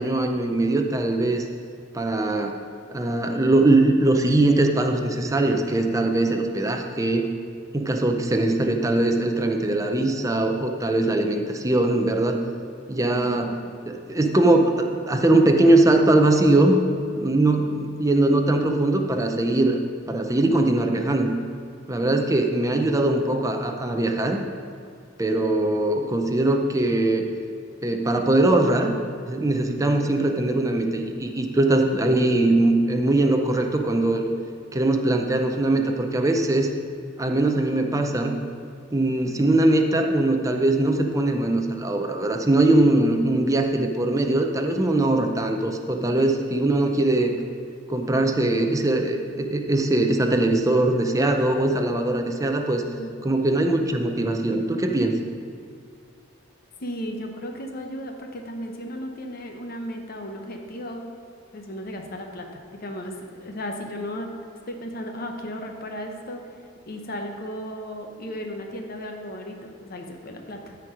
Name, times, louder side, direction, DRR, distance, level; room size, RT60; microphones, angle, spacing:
voice 1, 0.0-1.5 1.9-2.5 2.9-7.3 7.7-12.4 12.9-13.6 13.9-16.8 17.2-19.8 20.1-21.4 21.9-24.4 25.2-27.3 27.8-29.0 29.3-34.3 34.7-36.7 37.2-38.4 38.9-47.4 47.9-52.8 53.2-55.2, right 2 dB, 15° right, 4 dB, 0.6 m, -21 dB
voice 2, 13.2-13.6 53.0-53.2 56.8-61.1 61.5-64.4 64.7-66.4 66.9-70.8, equal, 50° left, 3 dB, 0.9 m, -35 dB
12.5 x 4.6 x 5.0 m, 2.3 s
head